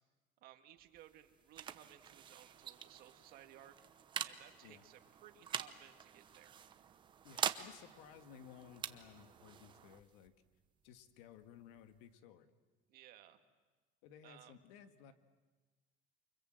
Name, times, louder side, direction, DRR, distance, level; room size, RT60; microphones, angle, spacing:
voice 1, 0.4-3.8 4.2-6.6 12.9-13.4 14.2-14.5, right 12 dB, 50° right, 7 dB, 1.9 m, -59 dB
sound 1, 0.8-12.1, right 8 dB, 25° right, 0.8 m, -46 dB
voice 2, 7.2-10.3 10.8-12.5 14.0-15.1, left 9 dB, 90° left, 8 dB, 1.9 m, -58 dB
29.0 x 25.0 x 7.8 m, 1.3 s
cardioid pair, 170°, 19 cm